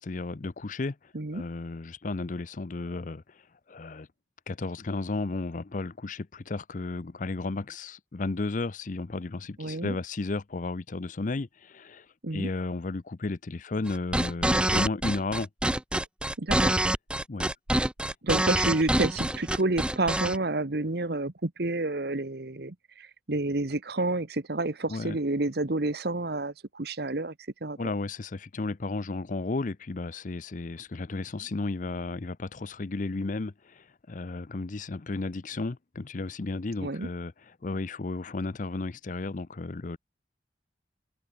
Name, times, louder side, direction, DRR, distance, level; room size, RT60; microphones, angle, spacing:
voice 1, 0.0-1.0 1.3-3.2 3.7-4.1 4.5-12.1 12.3-15.5 17.3-17.5 24.9-25.2 27.8-37.3 37.6-40.0, left 3 dB, 45° left, 0.6 m, -33 dB
voice 2, 9.6-10.0 12.2-12.5 16.4-16.8 18.2-27.3 27.6-27.9 36.8-37.1, right 2 dB, 60° right, 1.2 m, -29 dB
sound 1, 13.9-20.4, right 1 dB, 5° right, 0.7 m, -26 dB
open air
head